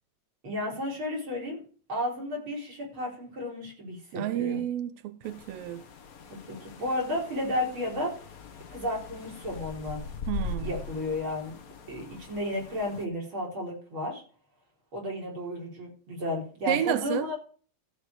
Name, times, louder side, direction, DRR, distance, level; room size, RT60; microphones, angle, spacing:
voice 1, 0.4-1.6 1.9-4.6 6.3-8.2 8.7-10.0 10.6-11.5 11.9-14.2 14.9-17.4, left 1 dB, 45° right, 5.0 m, -33 dB
voice 2, 4.2-5.8 10.3-10.7 16.7-17.3, right 12 dB, 75° right, 1.5 m, -30 dB
sound 1, 5.2-13.1, left 4 dB, 85° left, 0.7 m, -41 dB
14.5 x 4.9 x 6.6 m
omnidirectional pair, 3.3 m